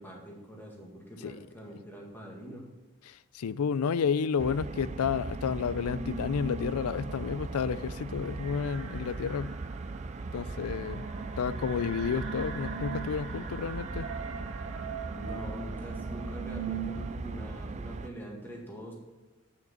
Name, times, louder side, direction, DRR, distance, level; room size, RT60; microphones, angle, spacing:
voice 1, 0.0-2.7 15.1-18.9, equal, 10° left, 1.9 m, -43 dB
voice 2, 3.3-9.5 10.3-11.1 11.4-14.1, left 6 dB, 90° left, 0.4 m, -31 dB
sound 1, 4.4-18.1, right 3 dB, 30° right, 0.3 m, -39 dB
sound 2, 5.3-17.2, right 5 dB, 75° right, 1.6 m, -41 dB
8.6 x 6.7 x 5.8 m
head